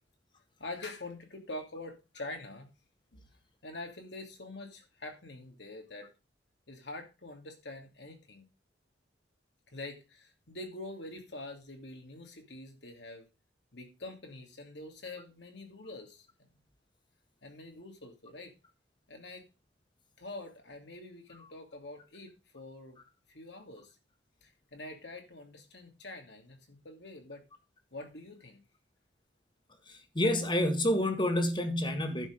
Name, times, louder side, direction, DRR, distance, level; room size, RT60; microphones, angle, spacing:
voice 1, 0.6-2.7 3.1-3.2 3.6-6.1 6.7-8.5 9.7-13.3 13.7-16.6 17.4-18.5 19.1-19.5 20.2-23.0 23.3-24.0 24.4-27.4 27.9-28.6, left 2 dB, 65° left, 2.8 m, -45 dB
voice 2, 29.9-32.3, left 1 dB, 25° left, 1.7 m, -29 dB
11.0 x 6.1 x 5.1 m
head